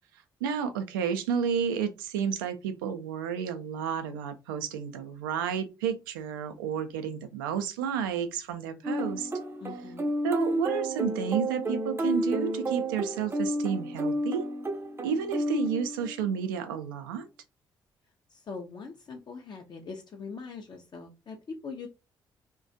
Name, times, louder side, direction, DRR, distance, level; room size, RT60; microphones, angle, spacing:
voice 1, 0.4-9.3 10.2-14.5 15.0-17.3, right 7 dB, 75° right, 0.4 m, -31 dB
sound 1, 8.8-16.3, right 1 dB, 25° right, 0.5 m, -31 dB
voice 2, 9.6-10.1 18.3-21.9, left 4 dB, 40° left, 0.5 m, -42 dB
2.3 x 2.2 x 2.6 m
figure-of-eight pair, 40°, 11 cm